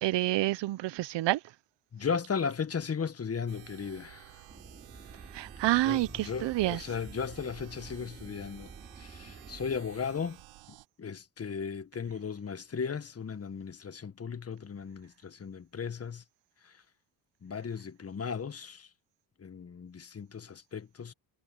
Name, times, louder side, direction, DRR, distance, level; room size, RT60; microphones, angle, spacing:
voice 1, 0.0-1.4 5.3-6.8, right 17 dB, 65° right, 0.9 m, -28 dB
voice 2, 1.9-4.4 5.8-8.7 9.0-10.4 11.0-16.2 16.6-16.7 17.4-18.9 19.4-21.1, left 6 dB, 30° left, 1.6 m, -36 dB
sound 1, 3.5-10.9, right 19 dB, 90° right, 4.2 m, -53 dB
sound 2, 4.5-9.8, right 3 dB, 25° right, 5.0 m, -50 dB
supercardioid pair, 80°, 46 cm